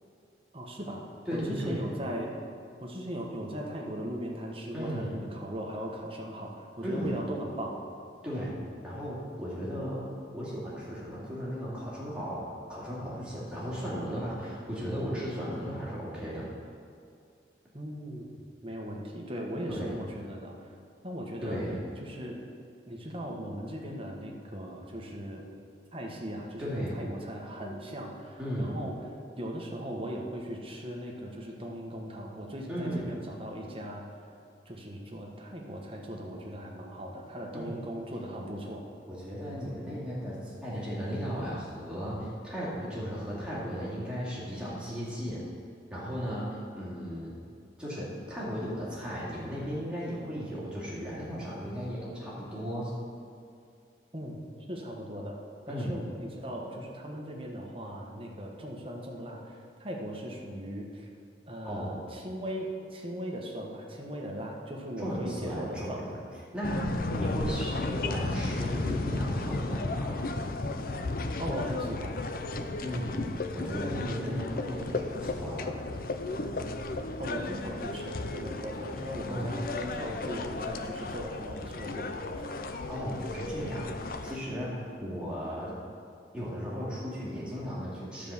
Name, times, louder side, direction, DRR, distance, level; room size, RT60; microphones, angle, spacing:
voice 1, 0.5-1.0 1.3-2.3 2.8-7.8 17.7-20.7 21.0-21.6 22.0-22.4 22.9-25.5 25.9-28.9 29.4-34.0 34.6-38.8 54.1-54.4 54.7-55.4 55.7-61.1 61.5-66.0 67.5-67.6 71.4-72.2 74.2-74.4 77.2-82.5, equal, 30° right, -1 dB, 1.3 m, -38 dB
voice 2, 1.3-1.8 4.7-5.1 6.8-7.1 8.2-8.6 8.8-16.5 19.7-19.9 21.4-21.8 26.6-27.0 28.4-28.7 32.7-33.1 37.5-37.8 39.1-45.4 45.9-47.3 47.8-52.9 55.7-56.0 61.6-62.1 65.0-66.2 66.5-70.2 72.8-73.2 73.5-75.8 79.3-79.5 82.9-85.8 86.3-88.3, equal, 5° right, -8 dB, 2.4 m, -35 dB
sound 1, 66.6-84.4, left 2 dB, 50° left, 0.5 m, -34 dB
11.5 x 5.0 x 7.2 m, 2.4 s
head